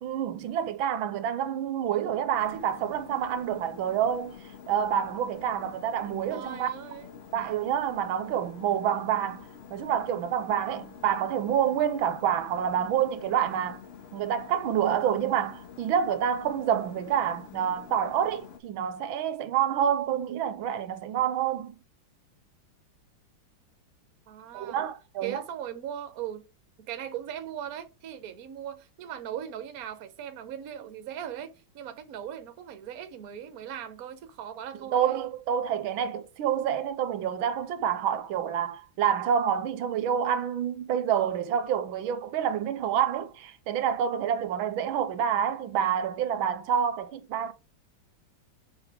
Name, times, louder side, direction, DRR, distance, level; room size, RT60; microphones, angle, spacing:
voice 1, 0.0-4.3 4.7-6.7 7.3-13.8 14.1-21.7 24.5-25.4 34.9-47.5, right 9 dB, 90° right, 1.5 m, -28 dB
sound 1, 2.3-18.6, left 7 dB, 50° left, 0.8 m, -47 dB
voice 2, 6.3-7.1 24.3-24.8 25.2-26.5 26.8-35.2, right 10 dB, 55° right, 1.1 m, -39 dB
7.2 x 3.4 x 4.7 m
omnidirectional pair, 2.2 m